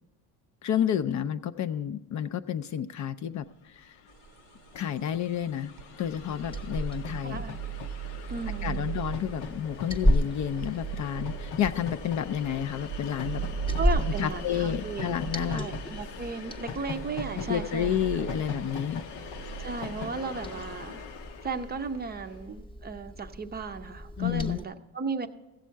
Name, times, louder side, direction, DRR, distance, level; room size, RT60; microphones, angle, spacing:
voice 1, 0.6-3.5 3.8-3.9 4.8-5.7 6.0-7.4 8.6-13.4 14.2-15.7 17.4-19.0 24.2-24.6, left 9 dB, 45° left, 11 dB, 0.4 m, -30 dB
Train, 3.7-3.8 4.0-22.4, left 6 dB, 85° left, 0.9 m, -42 dB
sound 1, 4.2-20.0, right 9 dB, 85° right, 0.6 m, -38 dB
Liquid, 6.0-24.6, equal, 15° left, 0.7 m, -35 dB
voice 2, 7.2-7.6 8.3-8.9 13.8-15.1 15.5-18.3 19.6-21.1 21.4-25.3, right 4 dB, 25° right, 8 dB, 0.5 m, -35 dB
15.5 x 7.3 x 4.5 m, 1.1 s
cardioid pair, 120°, 40 cm